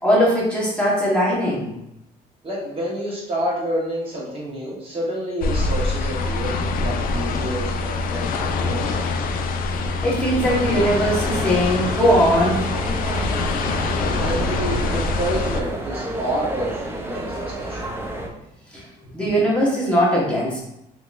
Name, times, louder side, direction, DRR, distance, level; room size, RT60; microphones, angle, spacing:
voice 1, 0.0-1.7 10.0-12.6 18.7-18.8 19.1-20.7, equal, 5° left, -7 dB, 1.2 m, -20 dB
voice 2, 2.4-9.0 14.2-17.9, equal, 35° right, -5 dB, 1.1 m, -29 dB
sound 1, 5.4-15.6, left 3 dB, 55° left, 0.4 m, -24 dB
sound 2, 11.0-18.3, right 1 dB, 15° right, 0.5 m, -30 dB
3.8 x 2.9 x 2.5 m, 0.83 s
cardioid pair, 110°, 17 cm